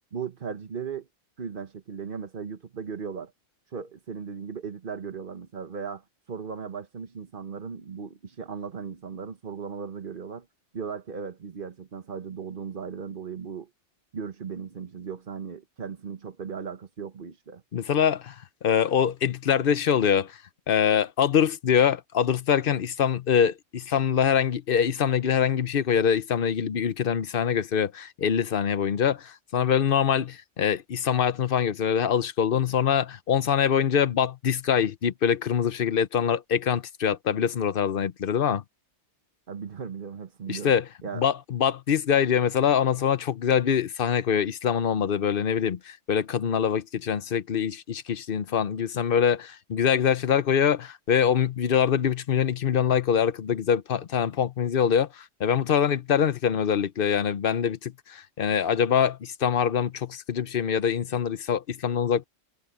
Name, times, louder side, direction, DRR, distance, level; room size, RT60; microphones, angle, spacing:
voice 1, 0.1-1.1 1.4-3.3 3.7-10.5 10.7-13.7 14.1-17.6 39.5-40.7 41.0-41.2, right 6 dB, 50° right, 1.3 m, -37 dB
voice 2, 17.7-18.3 18.6-20.4 20.7-38.6 40.5-40.9 41.1-62.2, left 8 dB, 55° left, 1.0 m, -24 dB
omnidirectional pair, 1.2 m